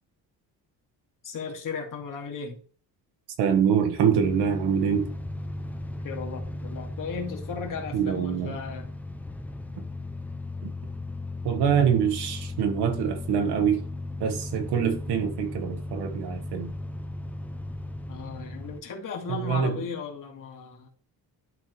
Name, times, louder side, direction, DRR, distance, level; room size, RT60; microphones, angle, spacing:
voice 1, 1.2-2.6 6.0-8.9 18.1-20.9, left 5 dB, 55° left, 2.4 m, -36 dB
voice 2, 3.4-5.0 7.9-8.6 11.4-13.8 14.2-16.7 19.3-19.8, right 8 dB, 90° right, 1.5 m, -25 dB
sound 1, 4.1-18.8, left 2 dB, 5° left, 0.6 m, -36 dB
12.0 x 4.4 x 3.3 m
cardioid pair, 165°, 39 cm